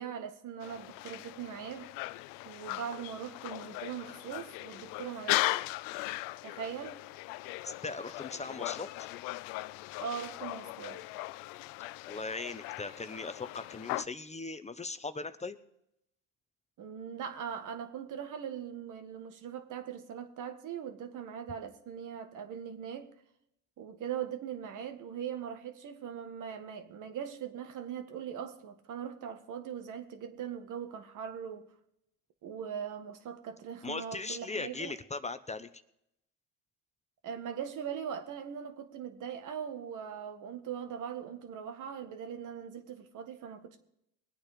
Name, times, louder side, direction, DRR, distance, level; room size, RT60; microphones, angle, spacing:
voice 1, 0.0-1.9 2.5-5.6 6.4-7.0 10.0-11.0 16.8-23.1 23.8-31.7 32.4-34.9 37.2-43.8, right 8 dB, 60° right, 1.8 m, -40 dB
sound 1, 0.6-14.0, left 19 dB, 80° left, 0.5 m, -38 dB
voice 2, 7.6-9.1 12.1-15.6 33.8-35.7, left 3 dB, 20° left, 0.8 m, -39 dB
21.0 x 8.8 x 5.2 m
supercardioid pair, 75°, 34 cm